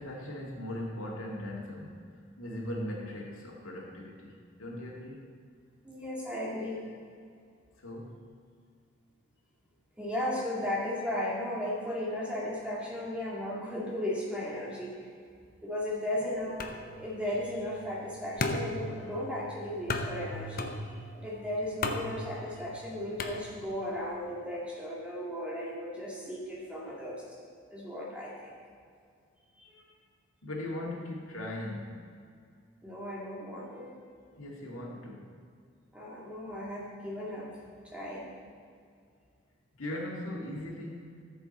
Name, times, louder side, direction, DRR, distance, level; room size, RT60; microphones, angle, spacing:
voice 1, 0.0-5.2 7.8-8.3 15.4-15.5 26.8-26.9 30.4-32.1 34.4-35.4 39.8-41.2, left 1 dB, 85° left, -2 dB, 2.1 m, -39 dB
voice 2, 5.8-6.8 10.0-14.9 15.6-16.6 17.0-27.4 27.7-28.5 29.6-29.8 32.8-34.0 35.9-37.5 37.8-38.3, left 1 dB, 5° right, -6 dB, 2.1 m, -36 dB
sound 1, 16.6-24.0, left 2 dB, 45° left, 0.7 m, -37 dB
14.0 x 7.1 x 4.3 m, 2.3 s
head